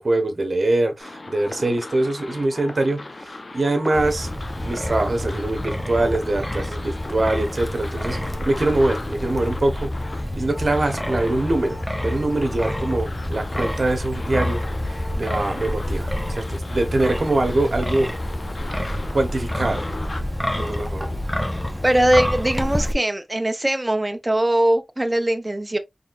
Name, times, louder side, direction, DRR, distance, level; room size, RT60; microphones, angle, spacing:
voice 1, 0.0-4.3 4.6-8.2 8.4-14.6 14.9-18.1 19.1-19.8 20.6-21.2, right 2 dB, 75° right, 1.0 m, -23 dB
sound 1, 1.0-20.2, left 2 dB, 65° left, 0.7 m, -38 dB
Wind, 3.9-22.9, left 1 dB, 10° left, 0.9 m, -28 dB
voice 2, 21.8-25.8, right 1 dB, 30° right, 0.8 m, -21 dB
4.2 x 3.3 x 2.4 m
wide cardioid pair, 55°, 0 cm